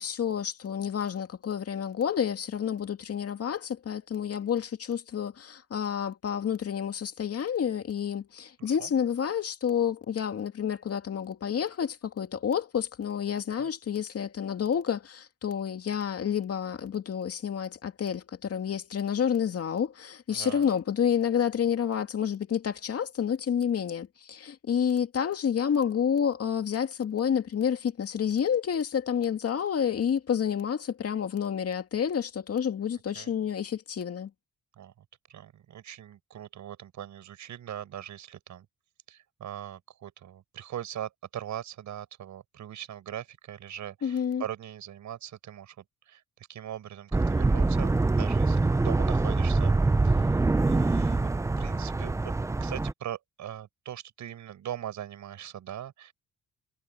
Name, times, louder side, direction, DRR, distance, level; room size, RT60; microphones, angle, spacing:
voice 1, 0.0-34.3 44.0-44.4, left 8 dB, 50° left, 2.4 m, -29 dB
voice 2, 8.6-8.9 13.6-13.7 20.3-20.7 33.1-33.3 34.8-34.9 35.3-38.7 39.1-45.8 46.1-46.2 46.5-49.7 50.0-50.3 50.7-51.3 51.6-52.3 52.6-56.1, right 11 dB, 70° right, 7.8 m, -40 dB
sound 1, 47.1-52.9, right 3 dB, 10° right, 0.4 m, -24 dB
cardioid pair, 90°, 30 cm